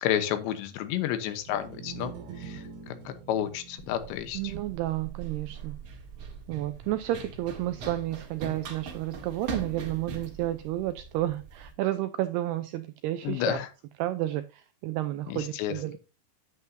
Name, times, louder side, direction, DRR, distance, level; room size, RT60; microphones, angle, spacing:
voice 1, 0.0-2.1 2.4-2.6 3.1-4.4 13.2-13.7 15.3-16.0, left 11 dB, 80° left, 10 dB, 3.2 m, -30 dB
sound 1, 1.3-7.7, right 6 dB, 70° right, 3.7 m, -47 dB
Run, 3.8-11.7, right 5 dB, 55° right, 1.8 m, -41 dB
voice 2, 4.3-5.8 6.5-13.6 14.0-16.0, right 15 dB, 90° right, 11 dB, 2.3 m, -31 dB
9.6 x 8.4 x 2.7 m, 0.31 s
omnidirectional pair, 5.2 m